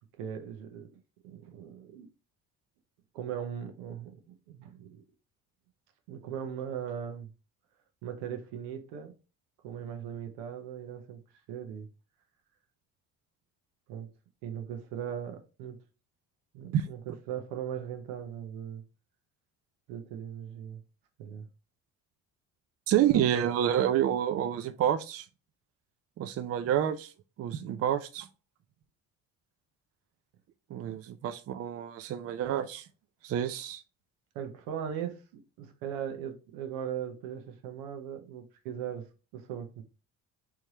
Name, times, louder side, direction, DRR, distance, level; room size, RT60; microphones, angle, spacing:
voice 1, 0.2-0.9 1.2-2.1 3.1-5.0 6.1-7.3 8.0-9.1 9.6-11.2 11.5-11.9 13.9-14.1 14.4-15.8 16.5-18.8 19.9-20.8 21.2-21.5 34.3-39.8, right 9 dB, 85° right, 0.8 m, -39 dB
voice 2, 22.9-25.3 26.2-27.1 27.4-28.3 30.7-32.9 33.2-33.8, right 10 dB, 45° right, 0.4 m, -28 dB
3.5 x 3.2 x 2.8 m
supercardioid pair, 85°, 35 cm